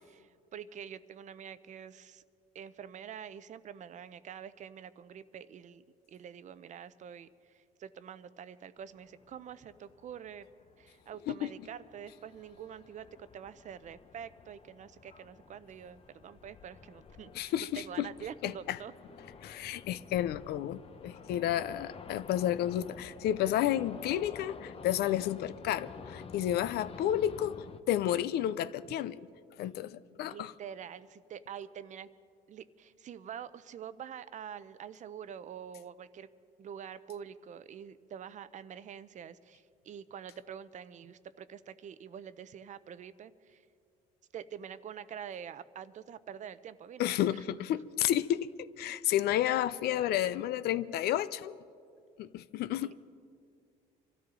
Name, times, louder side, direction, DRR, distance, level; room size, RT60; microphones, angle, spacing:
voice 1, 0.1-2.2 2.5-10.5 10.8-18.9 30.3-32.1 32.5-36.3 36.6-43.6 44.3-47.6 52.8-52.9, right 8 dB, 45° right, 0.6 m, -46 dB
sound 1, 8.8-27.8, left 5 dB, 35° left, 0.7 m, -51 dB
voice 2, 17.3-18.1 18.4-18.8 19.4-29.2 29.6-30.5 47.0-48.5 48.8-51.6 52.2-52.9, left 12 dB, 70° left, 0.5 m, -31 dB
25.0 x 13.5 x 3.8 m
cardioid pair, 110°, 17 cm